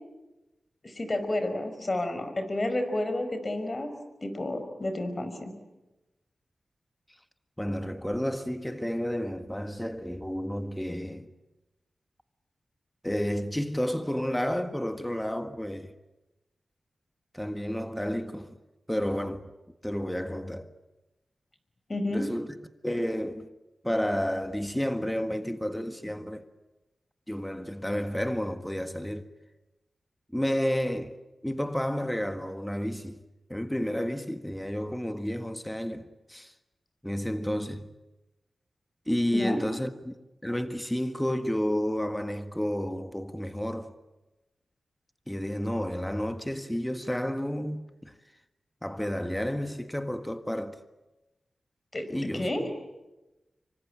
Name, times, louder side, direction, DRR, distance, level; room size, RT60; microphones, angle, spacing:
voice 1, 0.8-3.9 4.2-5.6 21.9-22.3 39.3-39.6 51.9-52.7, left 1 dB, 40° left, 5.2 m, -30 dB
voice 2, 7.6-11.3 13.0-15.9 17.3-18.6 18.9-19.5 19.8-20.7 22.1-22.5 22.8-23.5 23.8-26.4 27.3-29.3 30.3-31.1 31.4-33.2 33.5-36.5 37.0-37.9 39.1-40.1 40.4-43.9 45.3-48.1 48.8-50.8 52.1-52.5, equal, 5° left, 1.6 m, -31 dB
26.0 x 24.5 x 8.8 m
cardioid pair, 60°, 0 cm